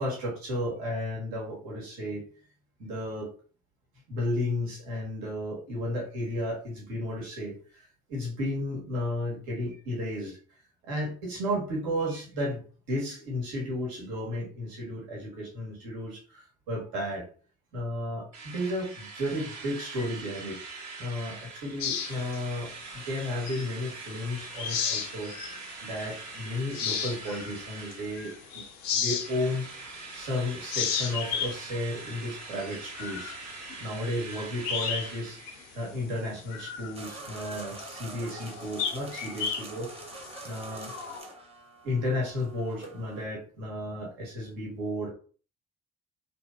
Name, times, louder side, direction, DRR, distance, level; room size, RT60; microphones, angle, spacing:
voice 1, 0.0-2.2 2.8-3.3 4.1-10.4 10.8-17.3 17.7-20.6 21.0-25.3 25.8-28.6 28.9-29.6 30.1-33.3 33.8-35.4 35.7-39.9 40.4-40.9 41.8-45.1, left 1 dB, 75° right, -3 dB, 1.2 m, -33 dB
Drill, 18.3-28.7 29.1-36.0, right 4 dB, 50° right, 0.9 m, -43 dB
sound 1, 21.8-24.0 24.3-25.7 26.1-26.2 26.6-30.3 30.6-35.2 35.5-35.6 36.1-41.2, left 7 dB, 85° left, 0.5 m, -34 dB
sound 2, 36.9-43.3, right 2 dB, 15° right, 0.8 m, -45 dB
2.7 x 2.5 x 2.2 m, 0.40 s
hypercardioid pair, 45°, 35 cm